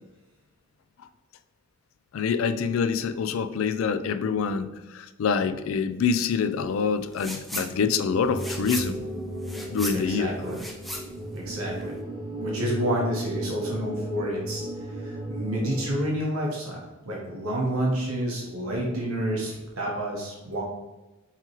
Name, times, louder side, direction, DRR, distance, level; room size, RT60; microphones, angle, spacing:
voice 1, 2.1-9.0 9.7-10.3, left 6 dB, 70° left, 10 dB, 0.3 m, -26 dB
sound 1, 7.1-7.7 8.0-12.0, equal, ahead, 0.4 m, -37 dB
sound 2, 8.1-15.9, right 1 dB, 20° right, 1.0 m, -34 dB
voice 2, 9.9-10.6 11.3-12.0 12.3-14.6 14.9-20.6, right 1 dB, 85° right, -3 dB, 1.0 m, -29 dB
5.7 x 3.0 x 2.9 m, 1.1 s
head